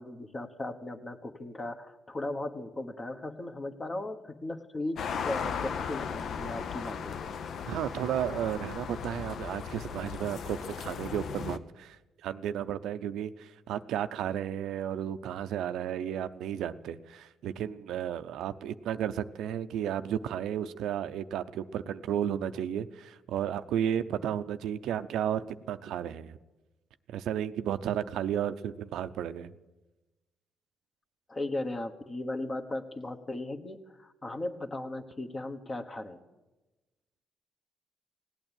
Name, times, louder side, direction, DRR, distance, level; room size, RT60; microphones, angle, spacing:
voice 1, 0.0-7.3 31.3-36.2, left 2 dB, 30° left, 7 dB, 1.4 m, -37 dB
sound 1, 5.0-11.6, left 7 dB, 65° left, 0.7 m, -37 dB
voice 2, 7.7-12.0 12.2-26.4 27.1-29.5, right 10 dB, 80° right, 11 dB, 0.6 m, -33 dB
17.0 x 9.0 x 9.0 m, 1.1 s
cardioid pair, 90°, 0 cm